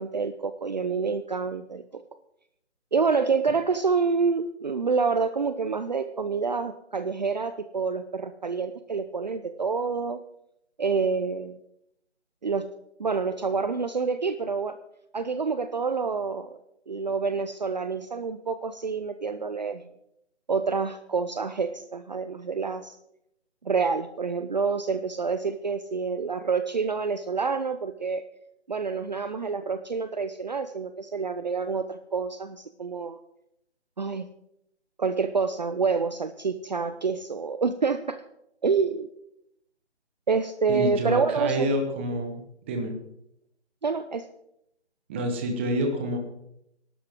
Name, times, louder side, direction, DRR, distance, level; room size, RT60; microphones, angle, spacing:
voice 1, 0.0-2.0 2.9-10.2 10.8-11.6 12.4-12.7 13.0-14.8 15.1-16.6 16.9-19.8 20.5-23.0 23.6-28.2 28.7-33.2 34.0-34.2 35.0-38.2 38.6-39.1 40.3-41.7 43.8-44.3, right 5 dB, 40° right, 10 dB, 0.6 m, -27 dB
voice 2, 40.7-42.4 42.7-42.9 45.1-46.2, right 1 dB, 10° right, 4 dB, 1.0 m, -27 dB
20.5 x 12.0 x 3.6 m, 0.78 s
figure-of-eight pair, 160°, 34 cm